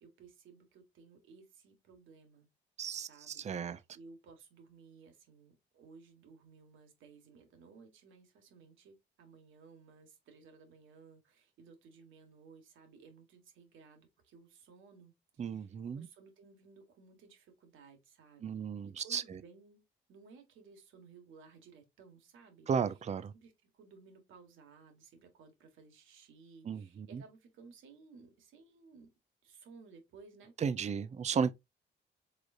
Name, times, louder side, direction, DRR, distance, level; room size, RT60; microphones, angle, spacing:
voice 1, 0.0-2.5 3.0-18.7 19.0-19.8 20.1-22.7 23.3-29.1 29.4-30.6, right 4 dB, 80° right, 1.6 m, -58 dB
voice 2, 2.8-3.8 15.4-16.1 18.4-19.4 22.7-23.3 26.6-27.2 30.6-31.5, right 6 dB, 35° right, 0.5 m, -35 dB
4.9 x 3.9 x 2.5 m
cardioid pair, 90°, 20 cm